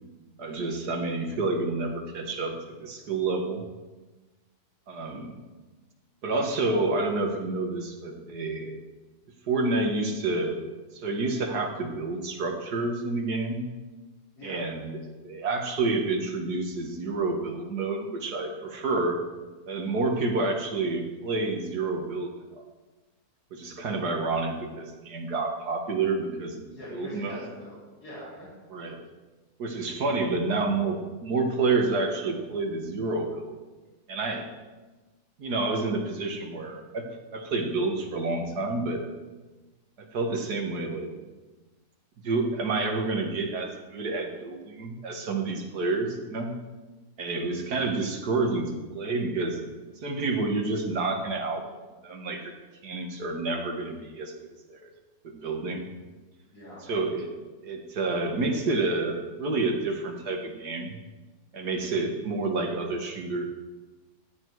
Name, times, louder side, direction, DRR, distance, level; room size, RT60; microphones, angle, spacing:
voice 1, 0.4-2.5 2.8-3.6 4.9-5.4 6.2-8.7 9.5-10.6 10.9-13.7 14.4-19.2 19.7-22.3 22.6-22.7 23.5-27.4 28.7-29.0 29.6-33.6 34.1-34.5 35.4-37.0 37.3-39.0 40.0-41.1 42.2-46.5 47.2-49.6 50.0-51.6 52.0-52.4 52.8-54.3 54.7-54.9 55.2-55.9 56.8-57.3 57.6-60.9 61.5-63.4, right 3 dB, 85° right, 3 dB, 2.2 m, -29 dB
voice 2, 26.7-28.5 56.5-56.9, equal, 80° left, -8 dB, 4.9 m, -42 dB
15.0 x 10.0 x 4.7 m, 1.2 s
omnidirectional pair, 1.7 m